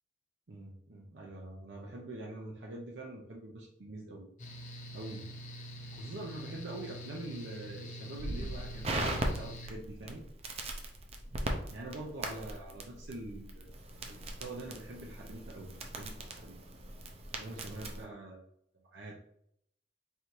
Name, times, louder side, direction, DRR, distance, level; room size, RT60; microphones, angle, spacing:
voice 1, 0.5-4.3 4.9-5.3 5.9-10.2 11.7-13.7 14.1-16.6 17.4-18.4 18.9-19.2, right 2 dB, 75° right, -2 dB, 0.7 m, -44 dB
Mechanical fan, 4.4-9.7, right 1 dB, 45° left, 0.6 m, -45 dB
Crackle, 8.2-18.0, right 1 dB, 35° right, 0.6 m, -39 dB
3.4 x 2.6 x 4.4 m, 0.71 s
head